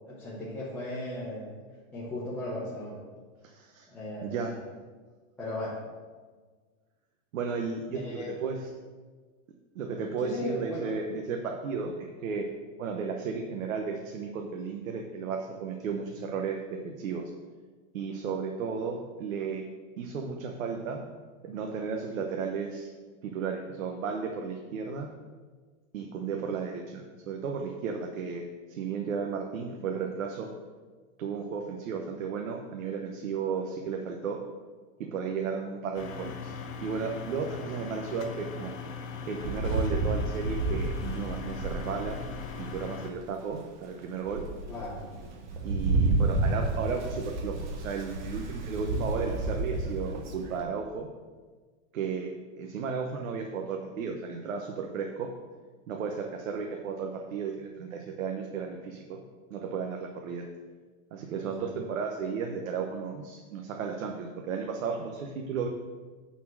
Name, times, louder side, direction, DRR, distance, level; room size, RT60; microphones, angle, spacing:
voice 1, 0.1-1.5 1.9-3.0 3.9-4.6 5.4-5.8 7.9-8.3 10.2-10.9 44.7-45.0 61.6-61.7, left 1 dB, 5° left, -11 dB, 0.8 m, -36 dB
voice 2, 3.4-3.9 4.2-4.5 7.3-8.6 9.7-12.5 12.8-17.2 17.9-19.6 20.0-21.0 21.4-22.9 23.2-25.1 25.9-30.5 31.2-34.4 35.0-36.6 36.8-38.7 39.3-42.2 42.6-44.4 45.6-51.1 51.9-52.3 52.6-55.3 55.9-59.2 59.5-60.4 61.1-65.7, right 5 dB, 75° right, 3 dB, 1.0 m, -34 dB
sound 1, 35.9-43.1, left 5 dB, 75° left, 1.1 m, -40 dB
Rain, 39.4-42.9 43.5-43.6 44.0-50.6, right 2 dB, 35° right, 0.9 m, -31 dB
9.2 x 4.4 x 6.1 m, 1.4 s
supercardioid pair, 180°, 40 cm